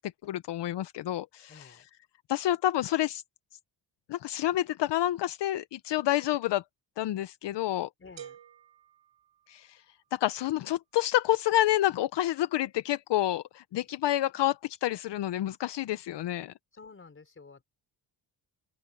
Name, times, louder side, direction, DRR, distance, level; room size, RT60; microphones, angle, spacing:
voice 1, 0.2-1.9 2.3-3.2 4.1-6.6 7.0-7.9 9.5-9.8 10.1-16.5, left 13 dB, 75° left, 0.7 m, -28 dB
voice 2, 1.5-1.9 8.0-8.4 16.7-17.6, left 4 dB, 30° left, 5.2 m, -51 dB
sound 1, 8.2-10.0, right 9 dB, 85° right, 7.6 m, -50 dB
open air
cardioid pair, 125°, 43 cm